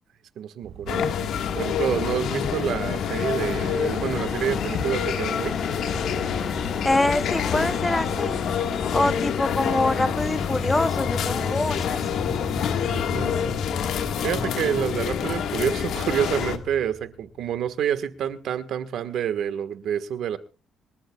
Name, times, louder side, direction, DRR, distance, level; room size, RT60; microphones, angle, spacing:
voice 1, 0.4-1.0 1.5-5.5 12.9-13.4 14.2-20.4, right 9 dB, 70° right, 10 dB, 1.5 m, -28 dB
sound 1, 0.6-16.7, right 6 dB, 55° right, 6.8 m, -44 dB
sound 2, 0.9-16.6, left 8 dB, 75° left, 1.7 m, -27 dB
sound 3, 2.5-17.7, left 4 dB, 30° left, 2.0 m, -35 dB
voice 2, 6.8-8.4 8.9-12.0, left 2 dB, 10° left, 12 dB, 0.9 m, -25 dB
26.0 x 13.0 x 2.4 m, 0.36 s
cardioid pair, 100°, 0 cm